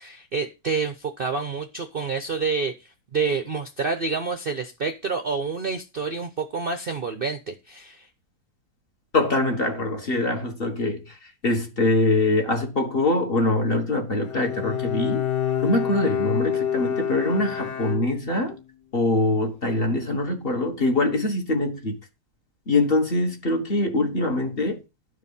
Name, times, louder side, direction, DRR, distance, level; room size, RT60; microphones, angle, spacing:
voice 1, 0.0-8.1, right 4 dB, 45° right, 0.8 m, -28 dB
voice 2, 9.1-15.2 15.6-18.6 18.9-22.0 22.7-24.8, left 2 dB, 35° left, 1.6 m, -23 dB
Bowed string instrument, 14.2-18.6, left 9 dB, 80° left, 1.8 m, -27 dB
11.5 x 4.9 x 5.5 m
omnidirectional pair, 1.8 m